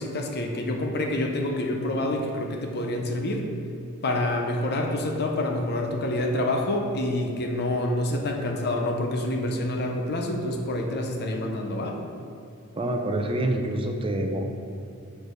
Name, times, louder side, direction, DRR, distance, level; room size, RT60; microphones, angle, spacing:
voice 1, 0.0-3.5 4.0-12.0, left 1 dB, 50° left, 2 dB, 0.7 m, -27 dB
voice 2, 12.8-14.4, right 1 dB, 25° right, 3 dB, 0.5 m, -26 dB
6.6 x 4.7 x 5.2 m, 2.4 s
head